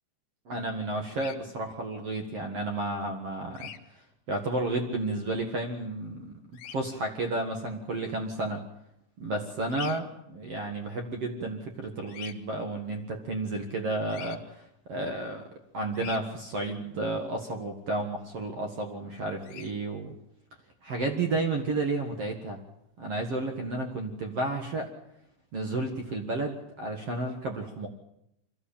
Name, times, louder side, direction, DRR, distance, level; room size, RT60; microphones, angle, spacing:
voice 1, 0.4-3.7 4.3-6.3 6.7-8.6 9.2-15.4 15.7-20.2 20.8-22.6 23.0-24.9 25.5-27.9, right 2 dB, 65° right, 4 dB, 1.5 m, -32 dB
Bird vocalization bird call bird song, 1.1-1.4 3.5-3.8 6.5-6.8 9.7-10.0 12.1-12.4 14.1-14.4 15.9-16.2 19.4-19.7, left 10 dB, 70° left, 2.9 m, -42 dB
24.0 x 14.5 x 8.7 m, 0.81 s
omnidirectional pair, 5.6 m